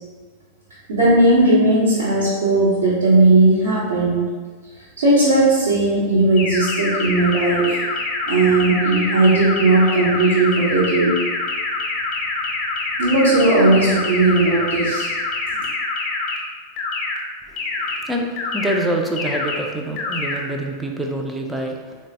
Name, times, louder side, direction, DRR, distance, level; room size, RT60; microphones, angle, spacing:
voice 1, 0.9-4.2 5.0-7.8 8.2-11.2 13.0-15.1, right 2 dB, 65° right, -10 dB, 0.8 m, -16 dB
sound 1, 6.4-16.4 16.8-17.2 17.6-18.0 18.4-18.8 19.2-19.6 20.0-20.4, left 3 dB, 35° left, 0.6 m, -25 dB
voice 2, 18.5-22.0, right 1 dB, 10° right, 1 dB, 0.4 m, -25 dB
3.9 x 2.1 x 3.2 m, 1.5 s
figure-of-eight pair, 90°, 0 cm